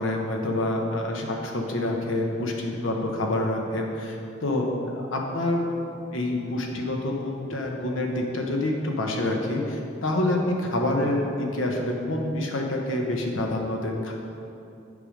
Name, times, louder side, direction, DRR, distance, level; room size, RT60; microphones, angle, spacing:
voice 1, 0.0-4.7 5.1-5.7 6.1-14.1, left 1 dB, 85° left, 1 dB, 1.1 m, -27 dB
8.4 x 5.0 x 5.1 m, 2.7 s
head